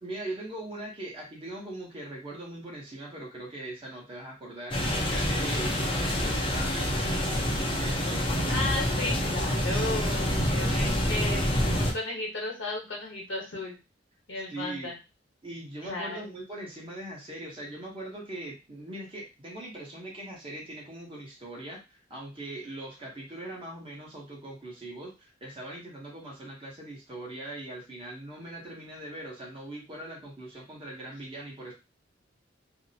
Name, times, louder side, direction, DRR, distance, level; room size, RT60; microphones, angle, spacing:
voice 1, 0.0-8.7 10.7-10.8 14.5-14.9 15.4-31.7, right 1 dB, 30° right, -3 dB, 0.9 m, -41 dB
sound 1, 4.7-11.9, equal, 25° left, 0.5 m, -27 dB
voice 2, 8.5-13.8 14.3-15.0 15.8-16.3, left 2 dB, 75° left, -2 dB, 1.1 m, -34 dB
2.6 x 2.0 x 2.7 m, 0.28 s
head